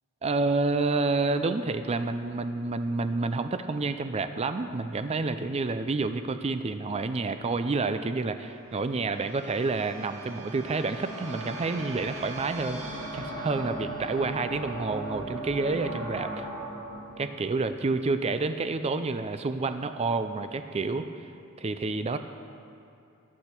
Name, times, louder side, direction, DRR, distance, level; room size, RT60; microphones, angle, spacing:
voice 1, 0.2-12.8 13.1-16.5 17.2-21.0 21.6-22.2, right 3 dB, 30° right, 9 dB, 0.4 m, -29 dB
sound 1, 8.3-18.5, right 1 dB, 55° right, 3.1 m, -39 dB
15.0 x 10.0 x 4.5 m, 2.7 s
head